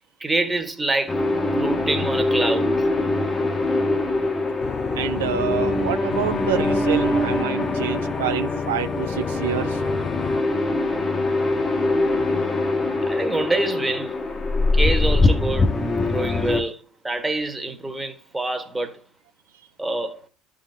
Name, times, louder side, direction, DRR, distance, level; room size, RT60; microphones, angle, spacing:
voice 1, 0.2-1.2 1.6-2.9 13.0-14.1 14.7-15.7 16.1-19.0 19.8-20.2, right 2 dB, 10° right, 1.5 m, -26 dB
sound 1, 1.1-16.6, left 2 dB, 25° left, 1.2 m, -23 dB
Organ, 4.6-10.4, left 8 dB, 40° left, 0.4 m, -32 dB
voice 2, 4.9-9.8, right 10 dB, 75° right, 0.4 m, -27 dB
12.5 x 4.1 x 3.5 m
hypercardioid pair, 65°, 0 cm